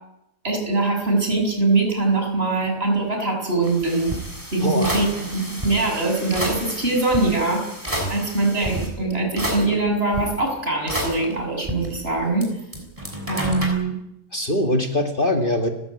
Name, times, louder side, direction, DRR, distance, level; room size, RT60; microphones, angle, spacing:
voice 1, 0.4-4.2 4.5-7.7 8.1-12.5 13.3-13.9, right 2 dB, 40° right, 3 dB, 6.7 m, -22 dB
sound 1, 3.6-8.9 9.4-10.2 10.9-12.5 12.7-13.7, right 1 dB, 20° right, 6.7 m, -30 dB
voice 2, 4.6-5.0 8.0-8.1 14.3-15.7, left 1 dB, 35° left, 5 dB, 2.3 m, -22 dB
30.0 x 15.0 x 9.7 m, 0.84 s
omnidirectional pair, 1.5 m